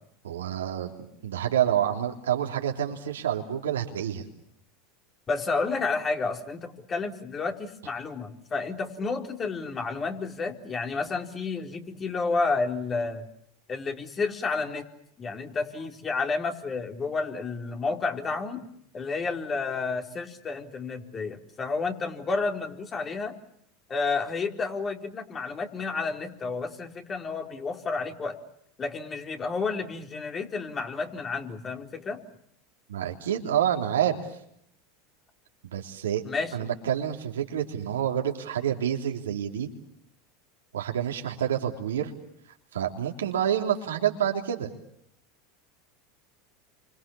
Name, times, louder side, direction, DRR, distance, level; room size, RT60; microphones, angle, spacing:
voice 1, 0.2-0.9 1.2-4.3 32.9-34.3 35.7-36.2 36.5-39.7 40.7-42.1 42.7-44.7, right 10 dB, 90° right, 2 dB, 3.5 m, -28 dB
voice 2, 5.3-13.3 13.7-14.9 15.2-18.7 18.9-23.3 23.9-28.4 28.8-32.2 36.2-36.7, left 4 dB, 30° left, 4 dB, 4.0 m, -31 dB
29.5 x 25.5 x 7.1 m, 0.72 s
hypercardioid pair, 95°, 0 cm